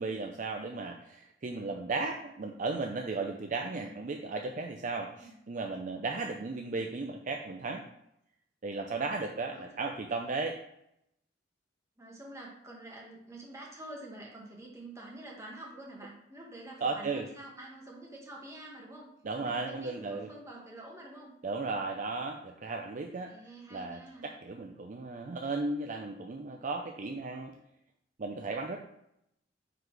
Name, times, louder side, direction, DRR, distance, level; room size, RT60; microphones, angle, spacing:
voice 1, 0.0-7.8 8.6-10.6 16.8-17.3 19.2-20.3 21.4-23.3 23.7-27.5 28.2-28.8, right 3 dB, 45° right, 3 dB, 0.5 m, -35 dB
voice 2, 12.0-19.1 19.4-21.3 23.3-24.3, right 1 dB, 15° right, -2 dB, 1.6 m, -47 dB
9.2 x 4.0 x 3.3 m, 0.79 s
head